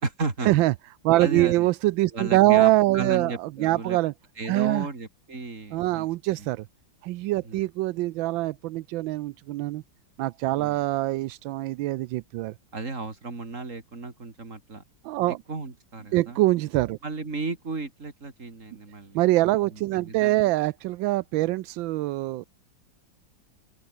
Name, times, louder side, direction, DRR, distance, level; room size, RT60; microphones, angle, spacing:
voice 1, 0.0-0.5 1.2-1.7 2.1-4.0 4.4-6.1 6.4-6.5 7.4-7.6 10.5-10.8 12.7-14.8 15.5-16.4 17.0-19.2 19.7-20.5, right 3 dB, 40° right, 3.6 m, -34 dB
voice 2, 1.0-4.1 4.5-4.9 5.7-6.6 7.0-9.8 10.2-12.5 15.0-15.4 16.1-17.0 19.1-22.4, right 17 dB, 85° right, 1.3 m, -24 dB
open air
omnidirectional pair, 2.1 m